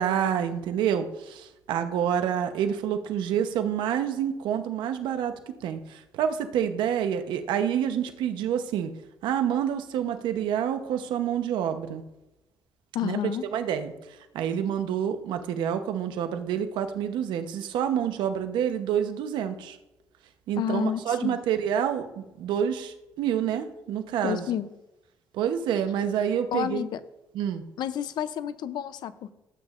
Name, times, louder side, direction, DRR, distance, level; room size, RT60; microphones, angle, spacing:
voice 1, 0.0-5.3 5.6-8.9 9.2-12.0 13.0-13.9 14.3-19.8 20.5-24.5 25.3-26.9 27.3-27.6, right 9 dB, 85° right, 8 dB, 0.9 m, -28 dB
voice 2, 12.9-13.5 20.6-21.4 24.2-24.7 26.5-27.0 27.8-29.3, left 10 dB, 70° left, 14 dB, 0.6 m, -30 dB
12.5 x 8.3 x 2.5 m, 0.96 s
cardioid pair, 115°, 8 cm